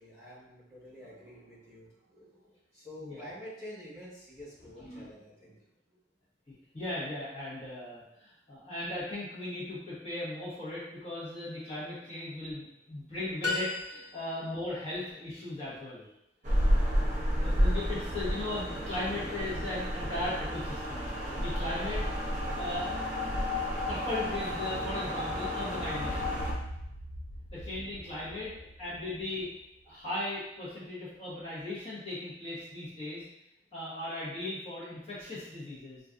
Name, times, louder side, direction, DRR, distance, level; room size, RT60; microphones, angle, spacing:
voice 1, 0.0-6.0 12.5-12.6 27.3-27.4 28.0-28.7, equal, 15° right, -10 dB, 1.5 m, -49 dB
voice 2, 6.7-16.1 16.7-17.1 17.3-21.1 21.4-22.0 22.5-22.9 23.9-26.4 27.5-28.5 28.8-29.5 29.9-33.2 33.7-36.0, left 1 dB, 35° left, -9 dB, 1.1 m, -37 dB
sound 1, 13.4-14.6, left 3 dB, 80° left, 0.8 m, -34 dB
sound 2, 16.4-26.5, equal, 45° right, 0.7 m, -31 dB
sound 3, 25.8-29.7, equal, 60° left, 0.4 m, -42 dB
3.8 x 2.5 x 2.5 m, 0.82 s
head